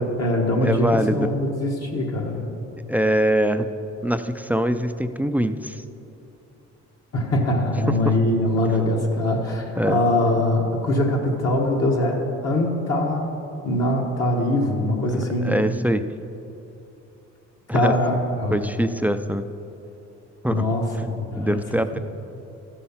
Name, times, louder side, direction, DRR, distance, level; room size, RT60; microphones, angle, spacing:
voice 1, 0.0-2.5 7.1-13.3 13.6-15.6 17.7-18.8 20.5-21.6 21.9-22.0, left 1 dB, 55° left, -1 dB, 1.5 m, -22 dB
voice 2, 0.6-1.3 2.8-3.7 4.0-5.8 7.9-8.2 9.8-10.1 15.1-16.0 17.7-17.9 18.5-19.5 20.4-20.7 21.4-22.0, equal, 5° right, 9 dB, 0.3 m, -23 dB
13.5 x 5.5 x 5.7 m, 2.8 s
cardioid pair, 90°, 30 cm